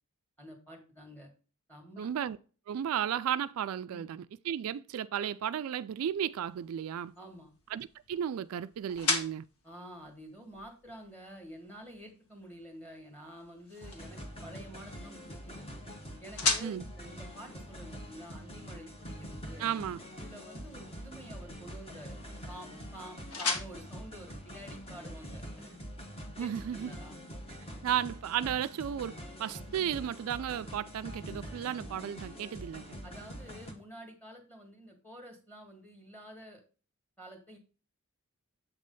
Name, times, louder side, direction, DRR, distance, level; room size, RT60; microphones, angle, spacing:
voice 1, 0.4-1.3 1.7-2.1 3.9-4.0 7.2-7.5 9.6-15.7 16.2-19.6 20.2-22.2 22.5-25.9 26.4-27.2 33.0-36.6 37.2-37.6, equal, 10° left, 1.7 m, -49 dB
voice 2, 2.0-2.4 2.7-7.1 7.7-9.4 16.6-16.8 19.6-20.0 26.4-26.9 27.8-33.0, right 9 dB, 70° right, 0.3 m, -34 dB
sound 1, 6.3-25.2, left 4 dB, 80° left, 1.3 m, -40 dB
sound 2, 13.8-33.7, equal, 25° left, 1.2 m, -45 dB
7.5 x 3.2 x 5.2 m
head